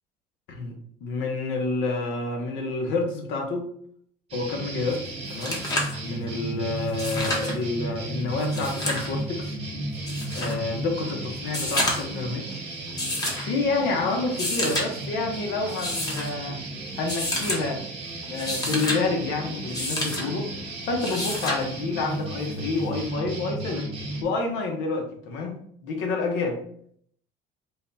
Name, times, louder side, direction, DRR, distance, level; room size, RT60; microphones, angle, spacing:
voice 1, 1.0-3.7 4.3-5.7 6.0-9.6 10.3-12.6 13.4-16.6 17.0-17.8 18.3-20.5 20.9-23.9 24.2-26.6, left 3 dB, 70° left, 2 dB, 1.0 m, -28 dB
sound 1, 4.3-24.2, right 2 dB, 35° right, 1.1 m, -34 dB
sound 2, 4.9-5.0 5.3-6.0 6.9-7.6 8.4-9.1 10.1-10.6 11.4-12.2 13.0-13.5 14.2-14.9 15.7-16.3 17.1-17.6 18.2-19.0 19.7-20.2 21.0-21.6 23.0-23.1, left 1 dB, 20° left, 0.9 m, -29 dB
3.7 x 2.2 x 4.0 m, 0.63 s
cardioid pair, 145°, 18 cm